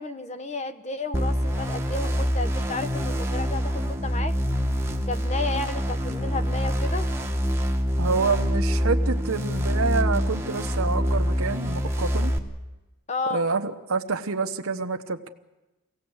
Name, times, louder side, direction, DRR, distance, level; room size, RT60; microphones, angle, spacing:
voice 1, 0.0-4.4 5.1-7.1 13.1-13.5, left 3 dB, 30° left, 11 dB, 0.9 m, -32 dB
sound 1, 1.1-12.4, equal, 10° right, 1.2 m, -25 dB
voice 2, 8.0-12.3 13.3-15.3, right 4 dB, 75° right, 6 dB, 0.9 m, -27 dB
24.0 x 17.0 x 7.9 m, 1.1 s
head